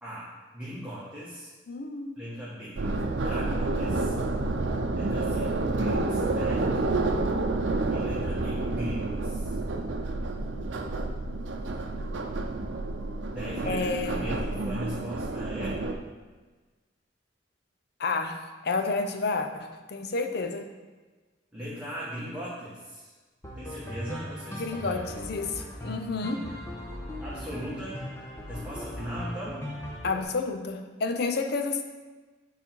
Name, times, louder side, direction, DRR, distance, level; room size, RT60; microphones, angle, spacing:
voice 1, 0.0-1.5 2.2-2.8 3.2-4.1 4.9-6.8 7.9-9.6 13.3-15.8 21.5-23.1 23.5-24.9 27.2-28.0 28.4-29.6, equal, 5° right, -10 dB, 1.4 m, -38 dB
voice 2, 1.7-2.2 13.7-14.3 18.0-20.7 24.6-26.6 30.0-31.8, left 3 dB, 60° left, 6 dB, 0.6 m, -30 dB
sound 1, 2.8-15.9, right 2 dB, 85° right, 0.6 m, -29 dB
sound 2, 23.4-30.2, left 1 dB, 15° left, 1.2 m, -39 dB
8.3 x 4.1 x 4.5 m, 1.3 s
head